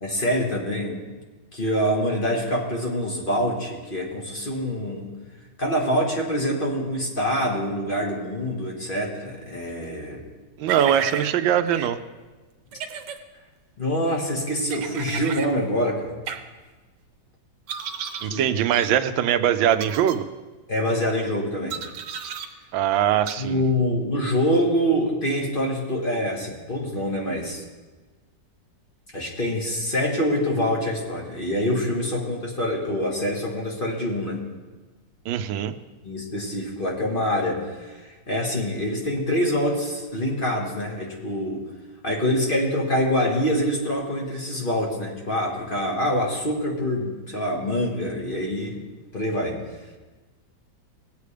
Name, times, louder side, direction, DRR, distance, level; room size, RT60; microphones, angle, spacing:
voice 1, 0.0-1.0 1.5-5.1 5.6-10.2 13.8-16.2 18.3-18.4 20.7-21.8 23.4-27.6 29.1-34.4 36.0-41.6 42.0-48.8 49.1-49.6, equal, 30° left, -1 dB, 1.6 m, -25 dB
voice 2, 10.6-12.0 18.2-20.2 22.7-23.6 35.3-35.8, right 10 dB, 90° right, 11 dB, 1.4 m, -22 dB
sound 1, 10.7-11.3 11.7-11.9 12.7-13.2 14.7-15.5 16.3-16.4 17.7-18.3 18.7-18.9 19.7-20.2 21.7-22.5 23.3-23.4, right 8 dB, 70° right, 1.4 m, -32 dB
18.5 x 8.3 x 3.3 m, 1.3 s
omnidirectional pair, 2.1 m